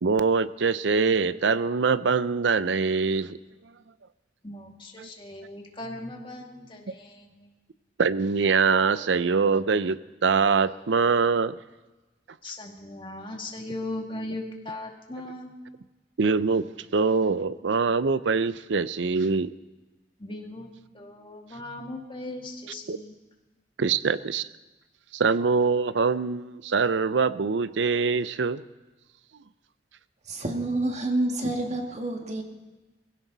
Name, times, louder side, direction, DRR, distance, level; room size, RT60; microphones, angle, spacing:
voice 1, 0.0-3.4 5.0-5.1 8.0-11.6 16.2-16.6 16.9-19.5 22.9-23.0 23.8-24.4 25.1-28.6, right 5 dB, 80° right, 15 dB, 0.6 m, -23 dB
voice 2, 4.4-7.5 12.4-15.5 20.2-23.1, left 2 dB, 30° left, 1 dB, 2.3 m, -38 dB
voice 3, 30.3-32.4, right 2 dB, 40° right, 3 dB, 1.9 m, -28 dB
21.5 x 16.5 x 4.0 m, 1.2 s
head